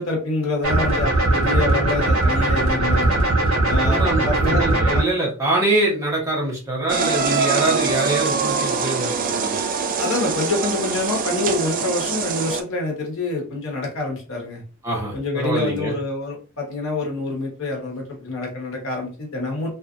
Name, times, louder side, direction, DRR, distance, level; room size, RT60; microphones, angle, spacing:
voice 1, 0.0-3.1 3.7-4.6 4.9-5.0 10.0-14.6 15.1-19.7, left 2 dB, 65° left, 0 dB, 1.0 m, -26 dB
sound 1, 0.6-5.0, right 2 dB, 65° right, 1.5 m, -19 dB
voice 2, 3.8-9.6 14.8-15.9, right 2 dB, 15° right, -4 dB, 0.9 m, -24 dB
sound 2, 6.9-12.6, right 5 dB, 40° right, 0.3 m, -23 dB
2.8 x 2.4 x 2.5 m, 0.37 s
head